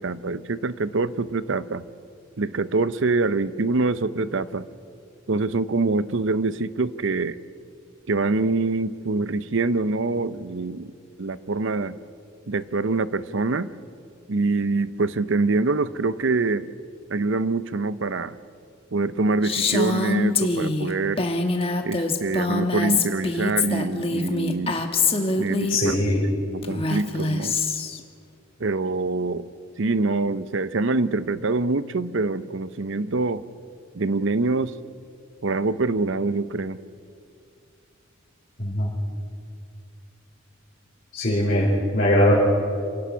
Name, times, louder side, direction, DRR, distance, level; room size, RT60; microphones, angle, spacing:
voice 1, 0.0-1.9 2.4-4.6 5.3-7.4 8.1-10.9 11.2-12.0 12.5-13.7 14.3-16.7 17.1-18.4 18.9-21.3 21.8-24.8 25.4-26.0 26.5-27.6 28.6-29.5 29.8-33.4 33.9-34.7 35.4-36.8, right 3 dB, 65° right, 15 dB, 0.7 m, -25 dB
Female speech woman speaking, 19.4-25.8 26.6-28.0, left 3 dB, 25° left, 1.3 m, -24 dB
voice 2, 25.7-26.2 38.6-39.0 41.1-42.3, left 1 dB, 40° left, -7 dB, 4.7 m, -21 dB
27.5 x 17.5 x 6.2 m, 2.4 s
head